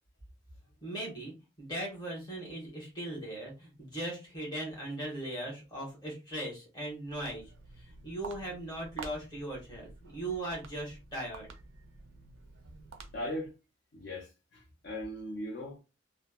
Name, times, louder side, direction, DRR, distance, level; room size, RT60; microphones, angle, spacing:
voice 1, 0.8-7.4 7.8-11.5, right 1 dB, 20° left, 1.2 m, -39 dB
Walk footsteps, 7.0-13.5, right 4 dB, 75° right, 0.4 m, -49 dB
voice 2, 13.1-13.5 13.9-15.8, left 1 dB, 55° left, 0.6 m, -39 dB
3.2 x 2.1 x 2.3 m
head